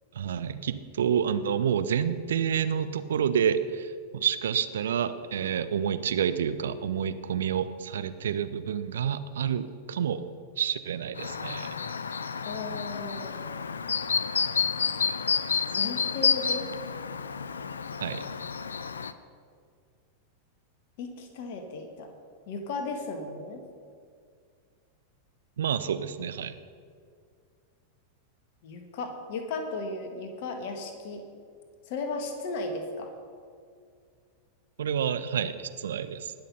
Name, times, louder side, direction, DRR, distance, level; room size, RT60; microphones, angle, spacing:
voice 1, 0.1-10.2 10.6-11.7 18.0-18.2 25.6-26.6 34.8-36.3, right 8 dB, 65° right, 11 dB, 0.6 m, -29 dB
Chirp tweet, 11.2-19.1, left 6 dB, 70° left, 0.5 m, -30 dB
voice 2, 12.4-13.4 15.7-16.7 21.0-22.1 22.5-23.6 28.6-31.2 31.9-33.1, left 3 dB, 50° left, 5 dB, 1.8 m, -35 dB
19.5 x 6.6 x 5.5 m, 2.2 s
figure-of-eight pair, 90°, 0 cm